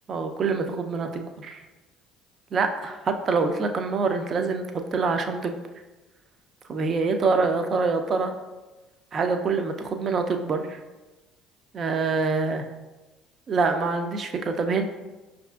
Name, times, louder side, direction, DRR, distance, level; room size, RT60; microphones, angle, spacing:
voice 1, 0.1-1.6 2.5-5.6 6.7-8.3 9.1-10.8 11.7-12.6 13.5-14.8, right 4 dB, 45° right, 6 dB, 0.4 m, -25 dB
5.3 x 2.4 x 2.3 m, 1.1 s
hypercardioid pair, 65°, 0 cm